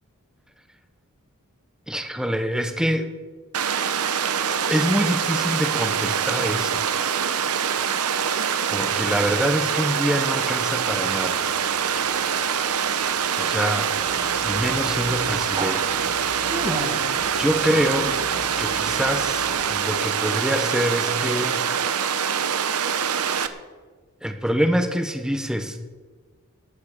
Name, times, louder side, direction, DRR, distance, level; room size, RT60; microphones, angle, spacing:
voice 1, 1.9-3.1 4.7-6.8 8.7-11.5 13.4-13.9 14.4-16.0 17.4-18.2 18.6-21.6 24.2-25.8, equal, 5° right, 6 dB, 1.1 m, -25 dB
Water, 3.5-23.5, right 7 dB, 85° right, 0.9 m, -24 dB
Conversation, 11.0-19.9, right 2 dB, 25° right, 1.3 m, -36 dB
19.5 x 9.6 x 5.0 m, 1.4 s
head